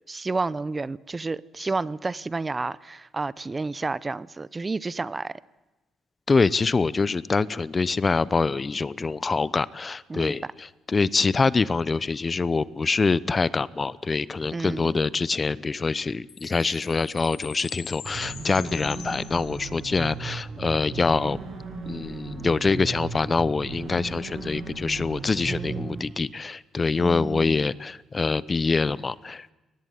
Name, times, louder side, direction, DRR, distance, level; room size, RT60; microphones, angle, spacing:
voice 1, 0.1-5.4 10.1-10.3 14.5-14.9 25.5-26.1 27.0-27.7, right 3 dB, 25° right, 0.7 m, -31 dB
voice 2, 6.3-21.4 21.8-29.5, left 4 dB, 30° left, 0.8 m, -25 dB
Chime, 16.3-20.0, left 9 dB, 75° left, 3.5 m, -43 dB
sound 1, 18.0-26.0, right 4 dB, 55° right, 7.4 m, -36 dB
22.0 x 19.0 x 9.4 m
cardioid pair, 90°, 0 cm